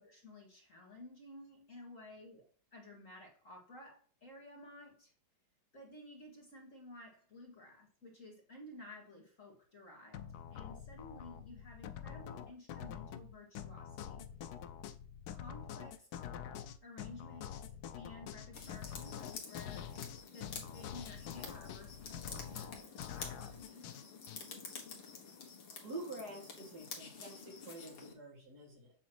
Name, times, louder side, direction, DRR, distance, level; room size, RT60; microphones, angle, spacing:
voice 1, 0.0-5.1 5.7-14.2 15.3-16.2 16.8-17.6 18.0-19.9 20.3-22.8 23.1-23.9, left 1 dB, 40° left, 0 dB, 1.8 m, -54 dB
sound 1, 10.1-24.4, left 9 dB, 85° left, 0.8 m, -46 dB
sound 2, 18.5-28.1, left 5 dB, 65° left, 2.2 m, -49 dB
voice 2, 25.8-28.9, right 2 dB, 50° right, 0 dB, 2.2 m, -47 dB
7.9 x 3.0 x 5.9 m, 0.41 s
omnidirectional pair, 2.3 m